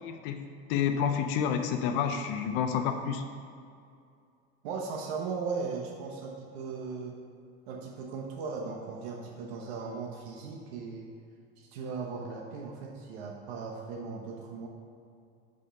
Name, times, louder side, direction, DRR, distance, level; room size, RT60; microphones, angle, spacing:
voice 1, 0.0-3.2, left 7 dB, 40° left, 7 dB, 0.4 m, -29 dB
voice 2, 4.6-7.2 7.7-11.1 11.6-14.7, right 5 dB, 80° right, 0 dB, 1.0 m, -37 dB
6.4 x 5.3 x 5.7 m, 2.4 s
cardioid pair, 180°, 31 cm